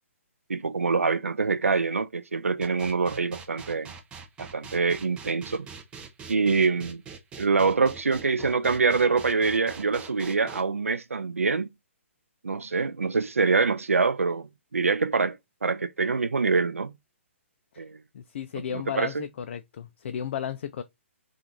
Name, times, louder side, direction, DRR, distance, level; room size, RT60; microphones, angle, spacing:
voice 1, 0.5-3.9 4.4-5.7 6.3-7.0 7.4-11.7 12.4-15.4 15.6-16.9 17.8-18.0 18.7-19.3, right 4 dB, 85° right, 0.4 m, -25 dB
sound 1, 2.6-10.6, right 6 dB, 15° right, 0.5 m, -43 dB
voice 2, 18.1-20.8, left 9 dB, 55° left, 0.3 m, -34 dB
3.0 x 2.4 x 3.6 m
figure-of-eight pair, 130°, 7 cm